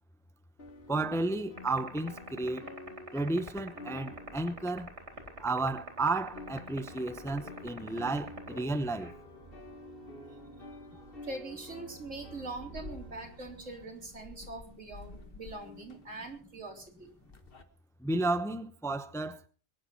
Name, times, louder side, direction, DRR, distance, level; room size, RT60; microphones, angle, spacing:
sound 1, 0.6-5.9 6.2-17.6, left 3 dB, 50° left, 1.6 m, -49 dB
voice 1, 0.9-2.7 3.1-4.9 5.4-9.1 18.0-19.4, right 2 dB, 5° left, 0.6 m, -32 dB
sound 2, 1.6-9.1, right 3 dB, 65° right, 3.7 m, -42 dB
sound 3, 4.1-13.9, right 5 dB, 40° right, 2.5 m, -55 dB
voice 2, 11.2-17.1, right 2 dB, 85° right, 4.0 m, -43 dB
22.5 x 10.5 x 4.2 m
omnidirectional pair, 1.3 m